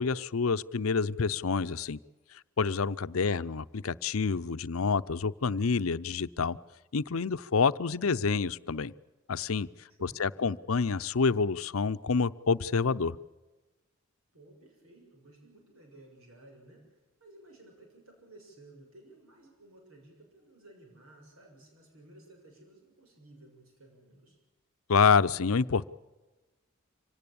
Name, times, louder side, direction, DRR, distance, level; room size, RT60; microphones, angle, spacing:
voice 1, 0.0-2.0 2.6-6.6 6.9-8.9 9.3-9.7 10.0-13.2 24.9-25.9, left 5 dB, 85° left, 14 dB, 0.7 m, -27 dB
voice 2, 3.2-3.6 10.0-10.4 14.3-24.4, right 1 dB, 85° right, 1 dB, 7.0 m, -56 dB
25.5 x 18.0 x 8.7 m, 1.2 s
head